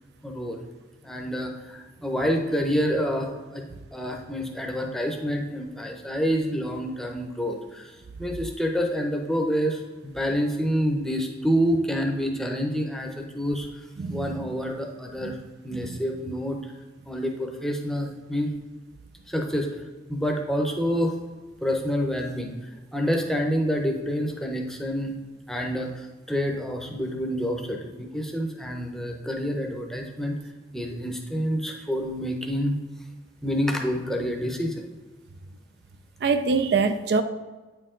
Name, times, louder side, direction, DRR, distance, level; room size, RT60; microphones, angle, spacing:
voice 1, 0.2-0.6 1.0-3.7 3.9-13.7 14.1-15.4 15.6-16.7 17.1-18.5 19.3-19.8 20.1-21.1 21.6-22.5 22.9-25.1 25.5-30.4 30.7-32.8 33.4-34.9, equal, ahead, 2 dB, 0.7 m, -27 dB
voice 2, 36.2-37.2, right 4 dB, 55° right, 9 dB, 0.3 m, -23 dB
8.9 x 4.5 x 3.7 m, 1.3 s
head